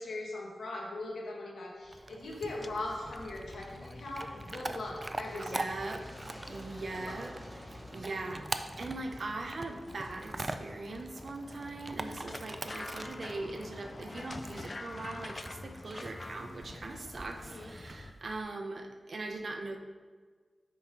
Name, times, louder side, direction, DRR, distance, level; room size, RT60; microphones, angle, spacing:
voice 1, 0.0-5.7 6.0-6.1 6.9-7.2 17.3-17.7, left 2 dB, 85° left, -2 dB, 1.3 m, -40 dB
sound 1, 1.8-9.9, right 1 dB, 15° right, 1.1 m, -53 dB
Chewing mastication / Dog, 1.9-18.4, right 2 dB, 35° right, 0.4 m, -44 dB
sound 2, 2.4-18.1, left 2 dB, 40° left, 0.3 m, -47 dB
voice 2, 5.3-6.1 6.5-7.3 7.6-19.8, right 2 dB, 60° right, 4 dB, 0.7 m, -41 dB
5.5 x 4.4 x 5.1 m, 1.5 s
cardioid pair, 60°, 0 cm